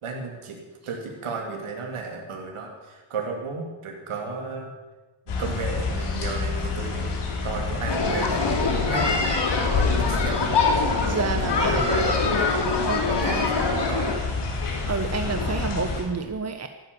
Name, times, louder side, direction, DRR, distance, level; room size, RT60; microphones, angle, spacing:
voice 1, 0.0-4.7 5.3-9.2 9.5-10.5 11.2-12.3 13.1-14.2, right 4 dB, 80° right, 1 dB, 2.8 m, -34 dB
sound 1, 5.3-16.0, left 4 dB, 80° left, 3.7 m, -28 dB
sound 2, 7.9-14.1, left 3 dB, 55° left, 3.1 m, -24 dB
voice 2, 11.0-11.8 12.8-13.1 13.3-13.4 14.9-16.7, right 4 dB, 30° right, 7 dB, 1.1 m, -29 dB
14.5 x 12.0 x 7.0 m, 1.2 s
cardioid pair, 80°, 49 cm